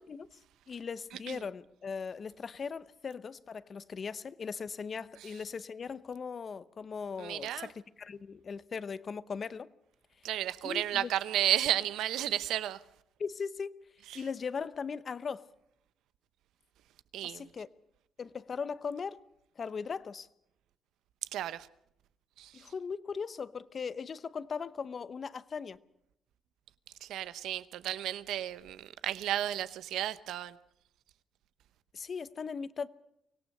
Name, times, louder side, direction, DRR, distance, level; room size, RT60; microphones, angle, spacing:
voice 1, 0.7-9.7 10.6-11.1 13.2-13.8 14.1-15.5 17.2-17.7 18.2-19.2 19.6-20.3 22.5-25.8 31.9-32.9, left 5 dB, 45° left, 0.9 m, -39 dB
voice 2, 7.2-7.7 10.2-12.8 17.1-17.4 21.3-21.7 22.4-22.5 27.0-30.6, right 12 dB, 85° right, 0.8 m, -32 dB
24.5 x 17.5 x 6.7 m
cardioid pair, 90°, 0 cm